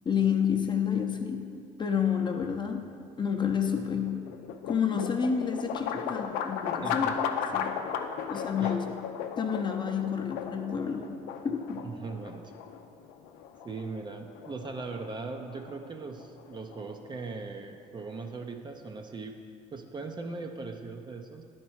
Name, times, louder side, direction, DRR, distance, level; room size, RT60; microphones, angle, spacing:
voice 1, 0.0-4.3 4.7-7.1 7.5-7.8 8.3-8.9 9.4-11.9, left 7 dB, 30° left, 3 dB, 0.7 m, -30 dB
sound 1, 3.6-17.5, left 7 dB, 80° left, 0.5 m, -36 dB
voice 2, 6.8-7.2 8.6-8.8 11.8-12.4 13.6-19.4 19.7-21.4, right 4 dB, 30° right, 5 dB, 0.6 m, -39 dB
10.0 x 4.4 x 4.6 m, 2.3 s
supercardioid pair, 80°, 16 cm